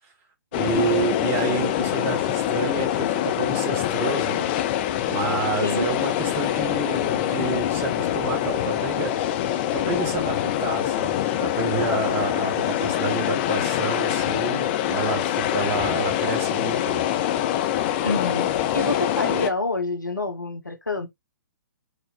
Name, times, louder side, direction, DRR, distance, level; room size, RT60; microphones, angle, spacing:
sound 1, 0.5-19.5, left 11 dB, 35° left, 0.7 m, -24 dB
voice 1, 0.5-4.5 5.1-9.1 9.7-17.0, right 5 dB, 25° right, 1.8 m, -29 dB
voice 2, 5.6-5.9 18.0-21.1, left 2 dB, 85° left, 1.3 m, -27 dB
4.9 x 4.1 x 2.6 m
figure-of-eight pair, 125°, 10 cm